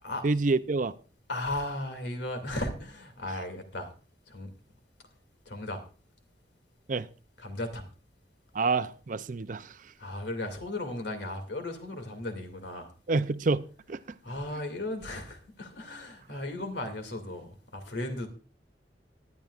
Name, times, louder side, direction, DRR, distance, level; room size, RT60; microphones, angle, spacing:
voice 1, 0.2-0.9 6.9-7.1 8.5-9.8 13.1-14.0, right 3 dB, 45° right, 0.5 m, -28 dB
voice 2, 1.3-3.9 4.3-4.5 5.5-5.8 7.4-7.9 10.0-12.9 14.2-18.3, left 1 dB, 75° left, 2.5 m, -36 dB
19.5 x 10.5 x 2.5 m
head